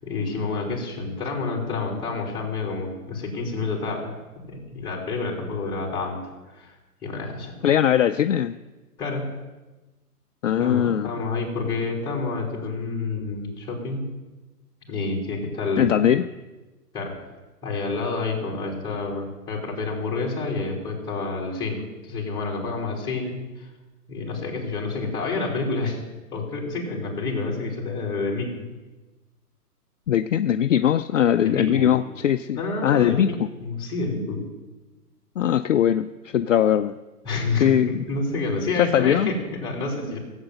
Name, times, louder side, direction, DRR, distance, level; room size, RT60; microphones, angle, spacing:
voice 1, 0.0-4.1 4.5-6.2 6.5-7.5 9.0-9.3 10.6-14.1 14.9-16.0 16.9-17.2 17.6-23.7 24.1-26.0 26.3-28.5 31.4-31.9 32.5-33.3 33.6-34.4 37.2-40.2, left 3 dB, 10° left, -3 dB, 3.3 m, -28 dB
voice 2, 7.6-8.6 10.4-11.1 15.8-16.3 30.1-33.5 35.4-36.9 37.6-38.0 38.8-39.3, left 10 dB, 55° left, 9 dB, 0.5 m, -20 dB
16.0 x 8.1 x 7.8 m, 1.2 s
hypercardioid pair, 160°, 47 cm